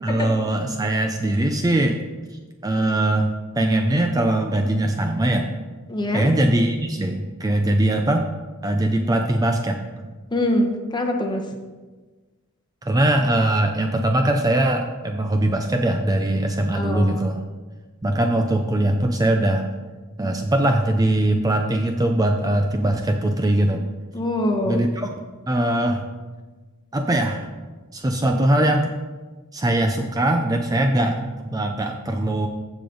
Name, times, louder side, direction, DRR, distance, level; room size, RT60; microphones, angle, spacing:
voice 1, 0.0-2.0 2.3-5.5 6.1-8.3 8.6-9.8 12.8-17.4 18.0-19.7 20.2-23.8 24.7-25.1 25.5-26.0 26.9-27.4 27.9-28.9 29.5-32.5, right 1 dB, 15° right, 4 dB, 0.5 m, -21 dB
voice 2, 5.9-6.3 10.3-11.4 16.7-17.1 24.1-24.9, left 1 dB, 20° left, 2 dB, 1.0 m, -24 dB
14.5 x 5.1 x 3.9 m, 1.3 s
head